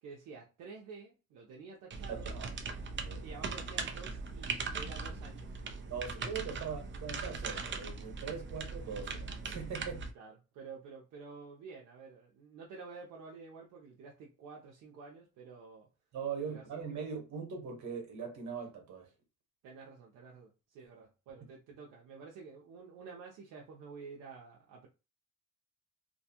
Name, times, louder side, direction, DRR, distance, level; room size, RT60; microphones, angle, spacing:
voice 1, 0.0-2.3 3.2-5.5 10.1-15.9 16.5-17.0 19.6-24.9, right 5 dB, 85° right, 0.7 m, -50 dB
sound 1, 1.9-10.1, right 4 dB, 40° right, 0.5 m, -40 dB
voice 2, 2.1-2.5 3.0-3.2 5.9-10.0 16.1-19.1, right 6 dB, 70° right, 1.1 m, -41 dB
2.5 x 2.2 x 2.8 m
cardioid pair, 90°, 30 cm